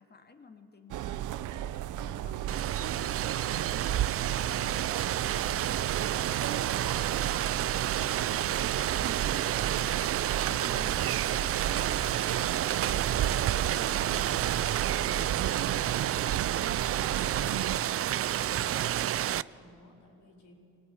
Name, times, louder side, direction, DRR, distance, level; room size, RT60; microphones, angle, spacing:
voice 1, 0.0-7.5 8.0-16.9, left 4 dB, 35° left, 6 dB, 2.4 m, -54 dB
sound 1, 0.9-17.8, right 11 dB, 80° right, 0.7 m, -35 dB
Rain, 2.5-19.4, right 12 dB, 50° right, 0.5 m, -30 dB
voice 2, 18.1-20.5, left 1 dB, 70° left, 2 dB, 4.8 m, -57 dB
22.5 x 18.5 x 9.7 m, 2.8 s
cardioid pair, 90°, 30 cm